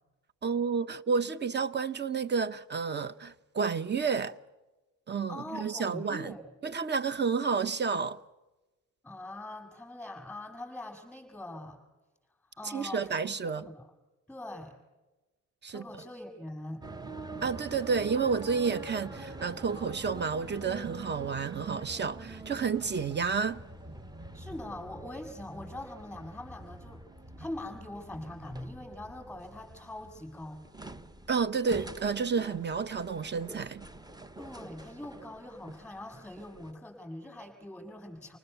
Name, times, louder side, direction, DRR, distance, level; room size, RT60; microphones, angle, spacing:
voice 1, 0.4-4.4 5.1-6.3 6.6-8.2 12.6-13.6 15.6-15.8 17.4-23.6 31.3-33.8, right 5 dB, 35° right, 1.0 m, -30 dB
voice 2, 5.3-6.5 9.0-11.8 12.6-13.9 14.3-14.8 15.7-16.8 24.3-27.0 27.4-30.7 34.4-38.4, left 1 dB, 5° left, 7.2 m, -43 dB
sound 1, 16.8-36.7, right 2 dB, 15° right, 1.0 m, -45 dB
28.5 x 20.0 x 6.9 m
cardioid pair, 90°, 30 cm